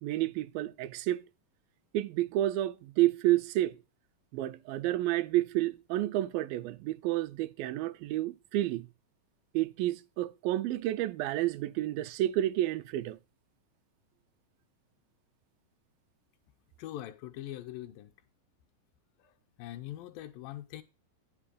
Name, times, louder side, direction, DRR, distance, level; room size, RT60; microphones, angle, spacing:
voice 1, 0.0-1.2 1.9-3.8 4.3-8.9 9.5-13.2, right 14 dB, 90° right, 2.4 m, -30 dB
voice 2, 16.8-18.1 19.2-20.8, left 13 dB, 90° left, 2.4 m, -43 dB
9.1 x 5.6 x 5.0 m
omnidirectional pair, 4.0 m